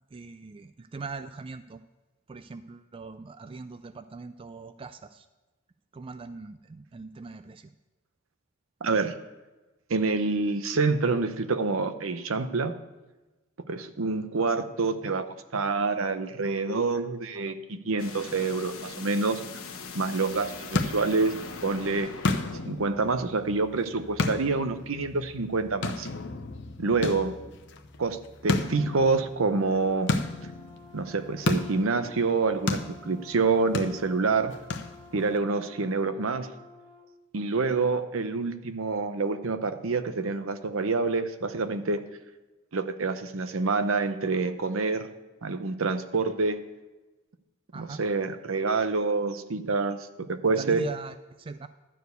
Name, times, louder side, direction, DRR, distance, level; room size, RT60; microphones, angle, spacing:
voice 1, 0.1-1.8 2.3-5.3 5.9-7.7 47.7-48.0 50.6-51.7, right 4 dB, 25° right, 10 dB, 0.3 m, -41 dB
voice 2, 8.8-9.1 9.9-12.7 13.7-15.3 15.5-19.4 19.9-21.3 21.6-22.1 22.7-26.1 26.8-27.3 28.0-30.1 30.9-32.8 33.1-34.5 35.1-36.5 37.3-42.0 42.7-45.1 45.4-46.6 47.7-50.8, right 3 dB, 75° right, 10 dB, 0.7 m, -27 dB
sound 1, 18.0-22.8, left 4 dB, 85° left, 1.2 m, -41 dB
sound 2, 20.2-35.4, left 2 dB, 60° left, 0.8 m, -34 dB
Brass instrument, 28.7-37.1, left 2 dB, 25° left, 1.6 m, -51 dB
12.5 x 4.7 x 8.1 m, 1.1 s
head